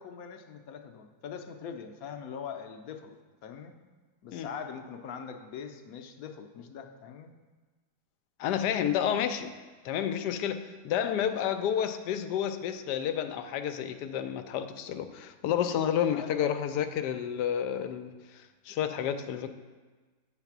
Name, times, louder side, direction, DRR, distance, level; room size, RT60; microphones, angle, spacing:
voice 1, 0.0-3.7 4.2-7.3 16.1-16.5, left 7 dB, 70° left, 6 dB, 1.0 m, -42 dB
voice 2, 8.4-9.5 9.8-18.1 18.7-19.5, left 9 dB, 90° left, 9 dB, 1.2 m, -30 dB
8.9 x 4.1 x 5.9 m, 1.3 s
omnidirectional pair, 1.7 m